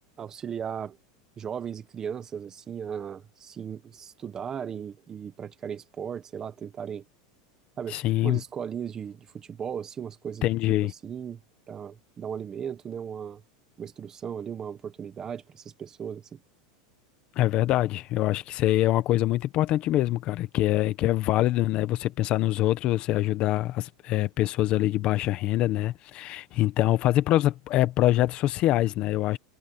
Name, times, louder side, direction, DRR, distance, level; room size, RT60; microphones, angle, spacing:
voice 1, 0.2-1.0 1.4-7.0 7.8-10.5 11.0-11.4 11.7-13.4 13.8-16.4, right 8 dB, 20° right, 1.1 m, -36 dB
voice 2, 7.9-8.4 10.4-10.9 17.4-29.4, left 15 dB, 35° left, 1.1 m, -24 dB
supercardioid pair, 160°, 3 cm